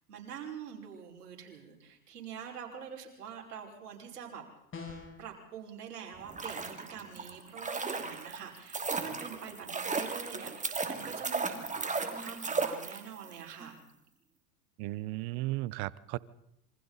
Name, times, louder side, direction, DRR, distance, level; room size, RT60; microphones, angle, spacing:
voice 1, 0.1-4.4 5.2-13.8, right 7 dB, 85° right, 0 dB, 5.7 m, -45 dB
sound 1, 4.7-5.3, left 5 dB, 25° left, 7.2 m, -43 dB
sound 2, 6.2-13.3 13.6-13.7, right 4 dB, 15° right, 2.7 m, -35 dB
voice 2, 14.8-16.2, right 18 dB, 55° right, 20 dB, 1.1 m, -35 dB
27.5 x 24.5 x 4.2 m, 0.83 s
hypercardioid pair, 95°, 46 cm